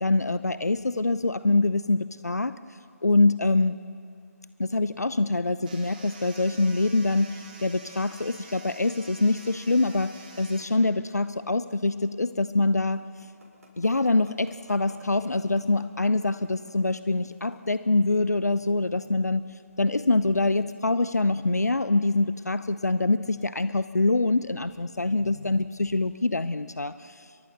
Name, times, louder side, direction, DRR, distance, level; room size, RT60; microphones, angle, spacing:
voice 1, 0.0-2.5 3.0-3.8 4.6-13.0 13.8-19.5 19.8-27.3, left 2 dB, 75° left, 14 dB, 0.7 m, -25 dB
sound 1, 5.6-10.6, right 3 dB, 30° right, 4.1 m, -47 dB
sound 2, 13.0-18.0, right 1 dB, 65° right, 7.7 m, -56 dB
29.5 x 23.0 x 6.7 m, 2.5 s
figure-of-eight pair, 150°, 9 cm